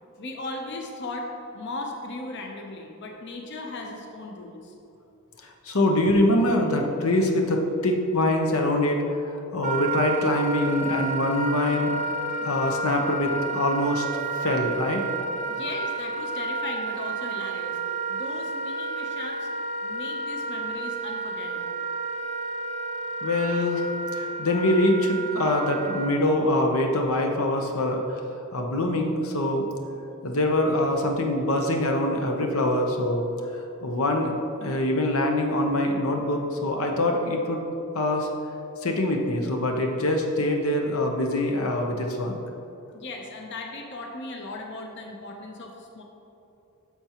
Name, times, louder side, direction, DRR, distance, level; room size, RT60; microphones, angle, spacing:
voice 1, 0.2-1.3 1.5-4.7 15.5-19.5 19.8-21.8 42.9-46.0, left 2 dB, 55° left, 1 dB, 0.8 m, -37 dB
voice 2, 5.4-11.9 12.4-14.1 14.4-15.0 23.2-28.2 28.5-29.7 30.2-33.3 33.5-34.3 34.6-37.6 37.9-38.3 38.8-42.4, left 1 dB, 85° left, 2 dB, 0.9 m, -24 dB
Wind instrument woodwind instrument, 9.6-26.2, right 3 dB, 35° right, 0.4 m, -31 dB
10.5 x 6.9 x 3.0 m, 2.9 s
head